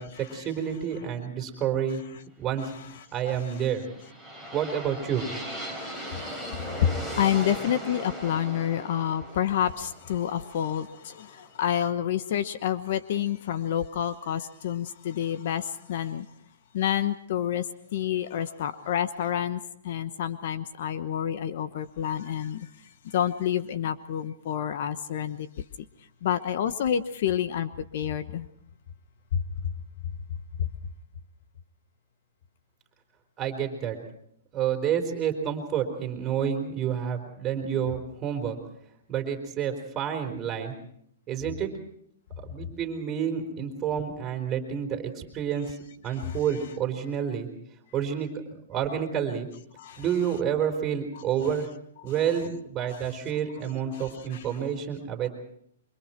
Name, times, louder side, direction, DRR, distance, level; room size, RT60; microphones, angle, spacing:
voice 1, 0.0-2.0 2.4-2.7 3.1-3.8 4.5-5.3 33.4-34.0 34.5-38.6 39.1-40.7 41.3-41.7 42.5-45.8 46.0-47.5 47.9-48.3 48.7-49.5 50.0-51.7 52.0-55.3, right 8 dB, 20° right, 3 dB, 4.5 m, -29 dB
sound 1, 3.5-11.5, equal, 15° left, 5.0 m, -38 dB
voice 2, 5.8-6.9 7.2-16.3 16.7-17.7 17.9-22.7 23.0-25.5 26.2-28.5 29.3-29.4 46.2-46.4 49.8-50.0 53.9-54.4, left 10 dB, 55° left, 12 dB, 1.1 m, -28 dB
28.0 x 24.5 x 4.6 m, 0.68 s
hypercardioid pair, 155°, 0 cm